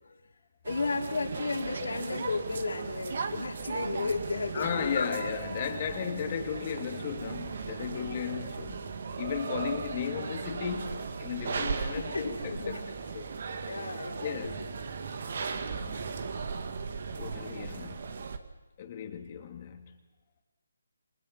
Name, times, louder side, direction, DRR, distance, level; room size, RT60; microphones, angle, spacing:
voice 1, 0.6-5.1 8.0-8.2 12.0-12.8 13.6-14.7, left 3 dB, 70° left, 4.8 m, -34 dB
sound 1, 0.6-18.4, right 5 dB, 55° right, 2.2 m, -37 dB
sound 2, 3.3-18.0, right 3 dB, ahead, 1.7 m, -53 dB
voice 2, 4.5-8.9 9.2-12.8 13.1-13.4 14.2-14.6 15.5-16.1 17.2-18.2 18.8-20.0, left 8 dB, 35° left, 2.5 m, -36 dB
29.0 x 25.5 x 5.9 m
figure-of-eight pair, 155°, 0 cm